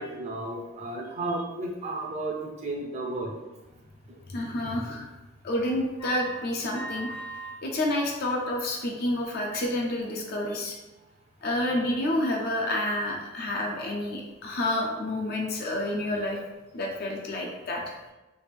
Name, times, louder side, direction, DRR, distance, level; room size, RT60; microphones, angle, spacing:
voice 1, 0.0-2.3 2.6-3.4 10.2-10.6, right 2 dB, 30° right, -1 dB, 0.5 m, -33 dB
voice 2, 4.3-5.1 5.4-7.1 7.6-10.8 11.4-16.4 16.7-17.9, left 1 dB, 45° left, 0 dB, 0.4 m, -29 dB
sound 1, 6.0-7.5 7.9-8.6 8.9-9.2 9.7-9.8, right 2 dB, 85° left, 1.1 m, -40 dB
3.3 x 2.4 x 3.3 m, 1.1 s
head